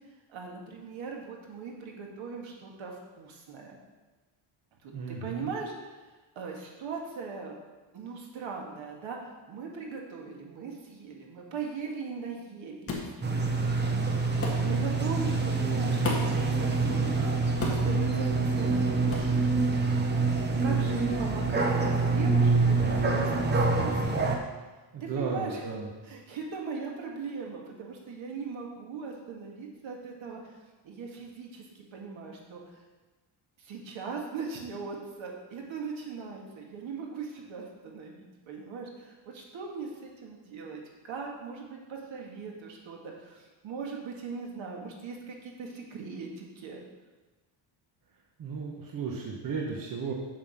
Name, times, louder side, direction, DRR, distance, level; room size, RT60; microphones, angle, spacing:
voice 1, 0.3-3.8 4.8-5.9 6.4-7.6 7.9-9.2 9.5-13.0 14.6-17.3 17.7-19.3 20.6-24.1 25.0-25.7 26.0-30.4 30.8-32.6 33.6-46.8, right 5 dB, 70° right, 0 dB, 2.1 m, -39 dB
voice 2, 4.9-5.5 24.9-25.9 48.4-50.1, right 5 dB, 45° right, -1 dB, 1.1 m, -34 dB
sound 1, 12.9-13.1 14.4-14.6 16.0-16.4 17.6-17.9 19.1-19.3, left 3 dB, 30° left, 1.6 m, -32 dB
sound 2, 13.2-24.4, right 3 dB, 20° right, 0.8 m, -26 dB
7.5 x 7.1 x 5.8 m, 1.2 s
cardioid pair, 175°, 48 cm